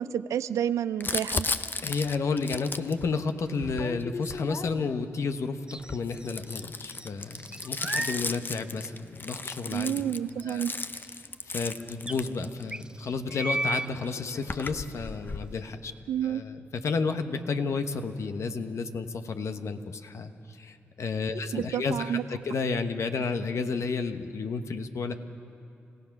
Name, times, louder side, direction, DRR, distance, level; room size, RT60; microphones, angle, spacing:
voice 1, 0.0-1.5 9.7-10.7 16.1-16.4 21.5-22.2, right 10 dB, 80° right, 15 dB, 0.5 m, -29 dB
Crumpling crinkling, 1.0-5.0 5.7-12.8 13.7-13.8 13.9-15.5, left 3 dB, 40° left, 0.8 m, -35 dB
voice 2, 1.8-9.9 10.5-10.6 11.2-15.9 16.2-25.2, left 4 dB, 70° left, 7 dB, 1.2 m, -31 dB
sound 1, 5.7-6.6 6.9-8.2 8.8-8.9 11.0-11.1 11.3-11.4 12.1-12.2 12.7-13.9, right 2 dB, 15° right, 0.4 m, -33 dB
27.5 x 16.0 x 6.0 m, 2.9 s
supercardioid pair, 45°, 5 cm